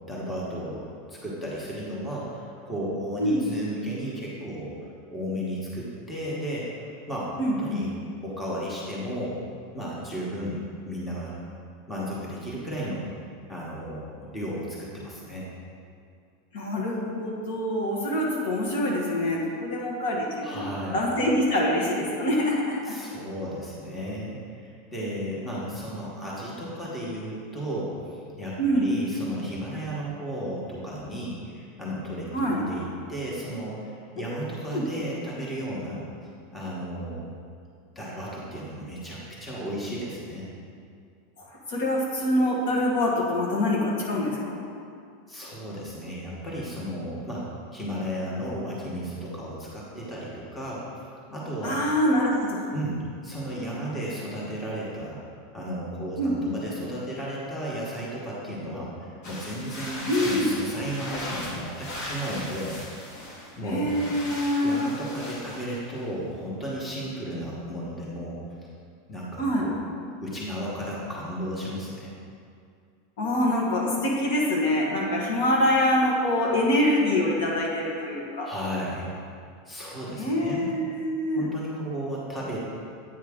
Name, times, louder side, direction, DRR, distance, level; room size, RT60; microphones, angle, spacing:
voice 1, 0.1-6.7 7.1-7.9 8.2-9.4 9.7-11.4 11.9-13.1 13.5-15.5 20.4-21.0 22.8-36.1 36.5-37.3 37.9-40.5 45.3-50.9 51.3-51.8 52.7-55.2 55.5-62.8 63.6-64.1 64.6-68.4 69.1-69.7 70.2-72.1 78.4-79.1 79.7-80.7 81.4-82.7, equal, 10° left, -6 dB, 1.2 m, -34 dB
voice 2, 7.4-7.9 16.5-20.7 20.9-22.9 28.6-28.9 32.3-32.6 34.3-34.9 41.4-44.6 51.6-52.7 56.2-56.6 60.0-60.5 63.6-64.9 69.4-69.7 73.2-78.5 80.2-81.5, left 1 dB, 70° left, -2 dB, 1.5 m, -25 dB
sound 1, 59.2-63.5 63.8-66.0, left 1 dB, 50° left, 1.7 m, -38 dB
8.6 x 5.5 x 3.6 m, 2.3 s
supercardioid pair, 160°, 0 cm